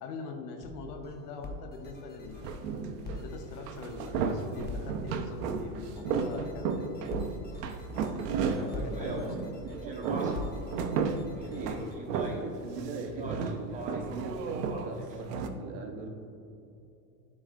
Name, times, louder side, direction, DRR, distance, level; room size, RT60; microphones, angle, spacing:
voice 1, 0.0-2.6 3.1-6.9 7.2-7.3 8.5-9.4 11.1-11.6, left 3 dB, 70° left, 4 dB, 1.0 m, -43 dB
sound 1, 0.6-12.0, left 2 dB, 20° left, 0.8 m, -44 dB
sound 2, 2.4-3.2 3.6-9.6 9.9-12.5 12.8-15.5, right 5 dB, 75° right, 0.8 m, -33 dB
Speech, 8.4-10.6 11.4-12.6 13.0-14.1 14.5-15.2, right 1 dB, 15° right, 1.1 m, -42 dB
voice 2, 8.6-9.4 9.8-10.2 11.4-16.1, right 4 dB, 50° right, 3 dB, 1.2 m, -41 dB
10.5 x 4.7 x 2.5 m, 2.8 s
hypercardioid pair, 100°, 48 cm